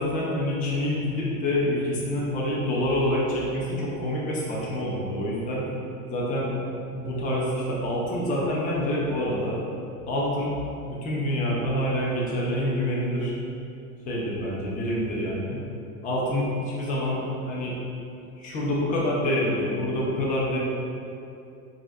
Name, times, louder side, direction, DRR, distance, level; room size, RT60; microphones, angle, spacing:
voice 1, 0.0-5.7 6.1-6.5 6.9-9.6 10.1-10.5 10.8-13.3 14.1-15.6 16.0-17.2 17.4-17.7 18.4-20.6, left 1 dB, 20° left, -5 dB, 0.4 m, -27 dB
2.4 x 2.3 x 2.2 m, 2.6 s
hypercardioid pair, 85°, 43 cm